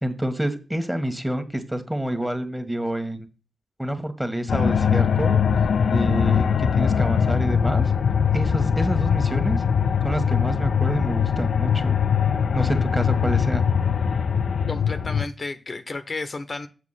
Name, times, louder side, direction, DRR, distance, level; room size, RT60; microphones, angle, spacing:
voice 1, 0.0-3.3 3.8-5.4 5.9-7.9 8.3-9.6 10.0-12.0 12.5-13.7, right 1 dB, 5° right, 1.6 m, -28 dB
sound 1, 4.5-15.3, left 7 dB, 75° left, 0.4 m, -21 dB
voice 2, 14.7-16.7, left 3 dB, 45° left, 0.8 m, -32 dB
7.6 x 5.8 x 5.7 m
wide cardioid pair, 85°, 0 cm